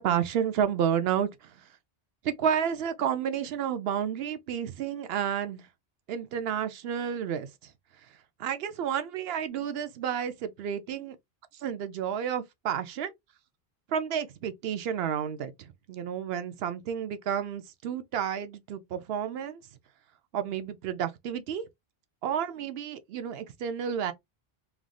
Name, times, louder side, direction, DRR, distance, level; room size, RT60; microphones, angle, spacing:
voice 1, 0.0-1.5 2.2-5.7 6.1-7.7 8.4-11.2 11.6-13.1 13.9-19.6 20.3-21.7 22.2-24.1, right 8 dB, 75° right, 0.8 m, -31 dB
3.4 x 2.4 x 2.2 m
omnidirectional pair, 1.0 m